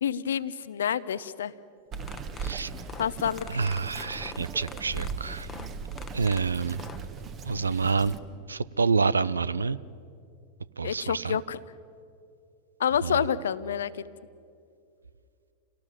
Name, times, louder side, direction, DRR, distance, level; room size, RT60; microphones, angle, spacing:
voice 1, 0.0-1.5 3.0-3.5 10.8-11.6 12.8-13.9, left 8 dB, 65° left, 16 dB, 0.7 m, -28 dB
sound 1, 1.9-7.0, left 7 dB, 20° left, 1.1 m, -44 dB
Bird vocalization bird call bird song, 1.9-8.2, right 5 dB, 30° right, 1.6 m, -38 dB
voice 2, 3.5-5.5 6.1-6.8 7.4-8.2 8.5-9.8 10.8-11.4 13.0-13.2, right 4 dB, 75° right, 19 dB, 0.6 m, -27 dB
29.0 x 18.5 x 7.4 m, 2.5 s
figure-of-eight pair, 90°, 0 cm